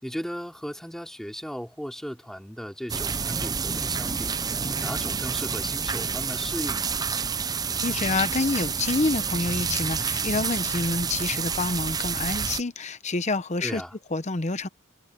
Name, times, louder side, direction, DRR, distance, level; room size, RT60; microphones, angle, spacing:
voice 1, 0.0-4.4 4.8-7.0 13.6-14.0, equal, ahead, 3.5 m, -36 dB
sound 1, 2.9-12.6, right 6 dB, 20° right, 0.5 m, -29 dB
voice 2, 7.8-13.8 14.1-14.7, left 3 dB, 35° left, 0.8 m, -27 dB
head